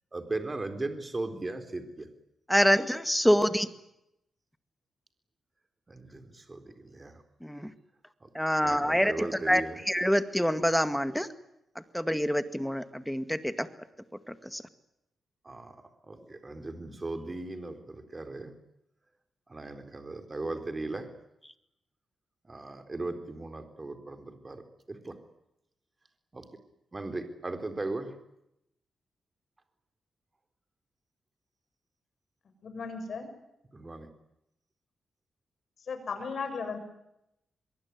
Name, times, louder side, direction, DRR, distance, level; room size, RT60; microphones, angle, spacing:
voice 1, 0.1-2.1 5.9-7.2 8.2-8.3 8.6-9.8 15.4-15.8 16.0-18.5 19.5-21.1 22.4-24.6 24.9-25.1 26.3-26.4 26.9-28.2 33.7-34.1, right 2 dB, 25° right, 7 dB, 4.1 m, -37 dB
voice 2, 2.5-3.7 7.4-7.7 8.3-11.3 11.9-13.7 14.3-14.6, equal, ahead, 10 dB, 2.0 m, -26 dB
voice 3, 32.6-33.3 35.9-36.8, left 5 dB, 60° left, 8 dB, 6.8 m, -35 dB
23.5 x 23.0 x 9.8 m, 0.83 s
cardioid pair, 95°, 0 cm